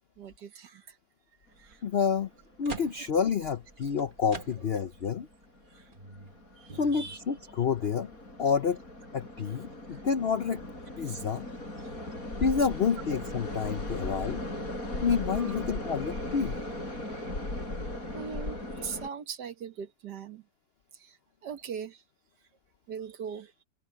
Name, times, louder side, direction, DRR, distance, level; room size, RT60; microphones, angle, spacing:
voice 1, 0.2-1.0 1.6-1.8 5.7-5.9 6.6-7.2 9.9-10.0 11.8-12.0 15.4-15.6 18.1-20.4 20.9-21.2 21.4-22.0 22.9-23.5, right 6 dB, 65° right, 1.9 m, -41 dB
sound 1, 1.5-1.7 2.2-5.0 5.4-5.5 5.9-7.2, right 4 dB, 30° right, 1.5 m, -46 dB
voice 2, 1.8-2.3 2.6-5.3 6.7-8.1 8.4-8.8 9.1-10.6 11.0-11.5 12.4-14.4 15.0-16.6, left 6 dB, 65° left, 0.6 m, -29 dB
sound 2, 2.2-2.3 2.5-2.6 3.4-3.6 3.9-4.1 4.6-5.0 5.5-19.1, left 1 dB, 50° left, 5.7 m, -38 dB
omnidirectional pair, 1.9 m